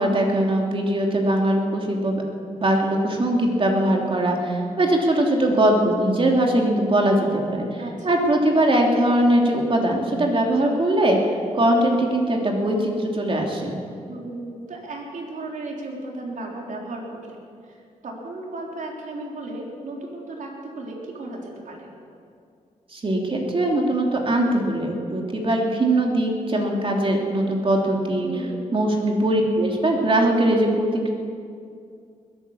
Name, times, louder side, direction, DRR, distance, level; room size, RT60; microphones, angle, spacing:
voice 1, 0.0-2.2 2.6-11.2 11.5-13.8 22.9-31.1, right 1 dB, 40° right, 0 dB, 3.0 m, -21 dB
voice 2, 14.1-17.4 17.6-21.9 28.2-28.6, right 2 dB, 70° right, -1 dB, 3.6 m, -35 dB
21.0 x 9.4 x 7.1 m, 2.4 s
cardioid pair, 65°, 14 cm